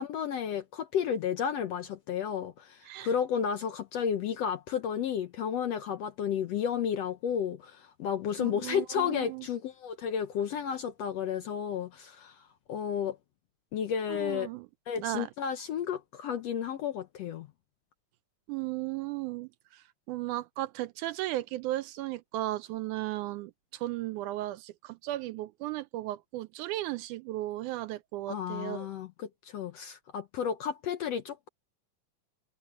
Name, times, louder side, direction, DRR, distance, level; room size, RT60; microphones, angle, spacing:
voice 1, 0.0-13.2 13.7-14.5 14.9-17.5 28.3-31.5, left 8 dB, 70° left, 1.6 m, -32 dB
voice 2, 8.4-9.5 14.1-14.7 15.0-15.3 18.5-28.9, right 16 dB, 80° right, 1.9 m, -36 dB
omnidirectional pair, 3.8 m